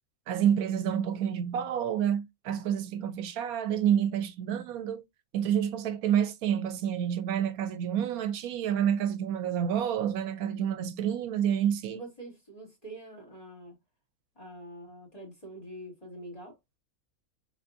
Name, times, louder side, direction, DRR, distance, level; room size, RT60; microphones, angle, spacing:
voice 1, 0.3-5.0 5.3-12.0, right 9 dB, 80° right, 1.0 m, -28 dB
voice 2, 11.9-13.7 14.4-16.6, right 1 dB, 25° left, 2.3 m, -45 dB
4.2 x 3.4 x 2.4 m
omnidirectional pair, 1.5 m